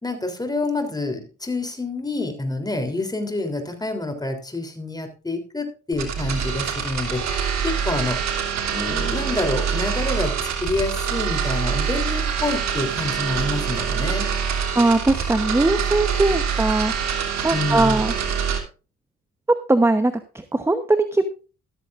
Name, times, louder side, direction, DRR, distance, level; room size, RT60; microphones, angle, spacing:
voice 1, 0.0-8.2 8.7-10.3 10.6-14.3 17.5-18.0, left 2 dB, 15° left, 6 dB, 3.3 m, -27 dB
sound 1, 5.9-18.6, right 7 dB, 65° right, 3.0 m, -25 dB
voice 2, 14.7-18.1 19.7-21.3, right 2 dB, 10° right, 10 dB, 0.9 m, -20 dB
14.0 x 13.0 x 2.5 m, 0.34 s
cardioid pair, 90°, 30 cm